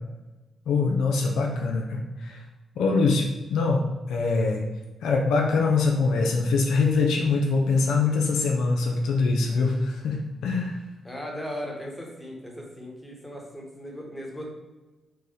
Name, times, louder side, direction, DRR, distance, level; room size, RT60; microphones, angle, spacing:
voice 1, 0.7-2.4 2.8-4.6 5.0-10.8, left 4 dB, 85° left, 1 dB, 0.4 m, -23 dB
voice 2, 11.0-14.5, equal, 15° left, -1 dB, 1.1 m, -37 dB
4.5 x 2.0 x 3.1 m, 1.1 s
supercardioid pair, 50°, 0 cm